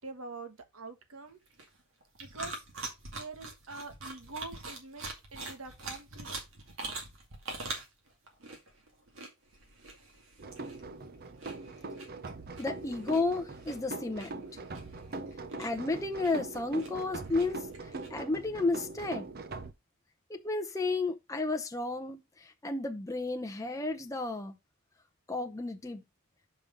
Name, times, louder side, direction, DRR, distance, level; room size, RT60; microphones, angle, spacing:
voice 1, 0.0-1.4 2.2-2.6 3.1-5.0 5.3-6.4, right 3 dB, 85° right, 1.5 m, -45 dB
sound 1, 1.3-18.1, right 3 dB, 65° right, 2.4 m, -44 dB
sound 2, 10.4-19.7, right 3 dB, 45° right, 0.8 m, -42 dB
voice 2, 12.6-14.4 15.6-17.6 18.1-19.3 20.3-24.6 25.3-26.0, left 3 dB, 15° left, 0.8 m, -32 dB
5.6 x 5.3 x 5.1 m
head